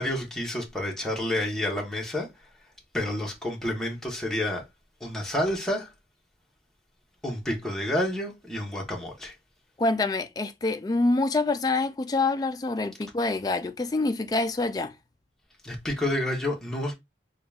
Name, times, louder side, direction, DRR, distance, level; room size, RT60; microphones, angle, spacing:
voice 1, 0.0-2.3 2.9-4.6 5.0-5.9 7.2-9.3 15.6-17.0, left 1 dB, 5° left, 1.0 m, -29 dB
voice 2, 9.8-14.9, left 3 dB, 20° left, 0.3 m, -26 dB
3.7 x 2.4 x 3.3 m
head